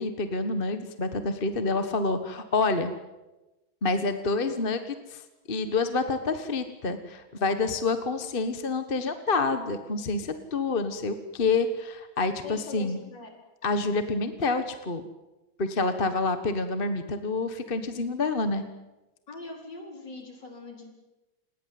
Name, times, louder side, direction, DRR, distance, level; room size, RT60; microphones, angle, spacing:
voice 1, 0.0-2.9 3.8-5.2 5.5-13.0 13.6-15.0 15.6-18.6, left 3 dB, 30° left, 9 dB, 1.4 m, -28 dB
voice 2, 12.4-13.3 19.3-20.9, left 3 dB, 60° left, 2 dB, 5.4 m, -42 dB
28.5 x 20.5 x 7.8 m, 1.0 s
omnidirectional pair, 2.2 m